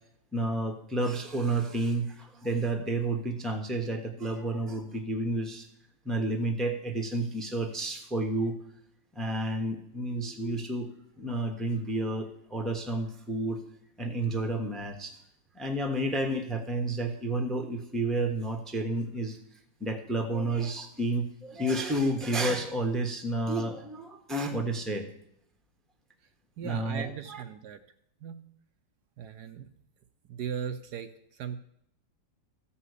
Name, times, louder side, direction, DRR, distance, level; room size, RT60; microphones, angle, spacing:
voice 1, 0.3-5.7 6.0-8.5 9.1-10.9 11.2-13.6 14.0-15.2 15.5-19.4 19.8-25.1 26.6-27.4, right 2 dB, ahead, 5 dB, 1.0 m, -30 dB
voice 2, 26.6-27.8 28.2-28.4 29.2-29.7 30.3-31.6, right 8 dB, 70° right, 8 dB, 1.2 m, -38 dB
14.5 x 5.7 x 8.1 m, 0.74 s
omnidirectional pair, 1.9 m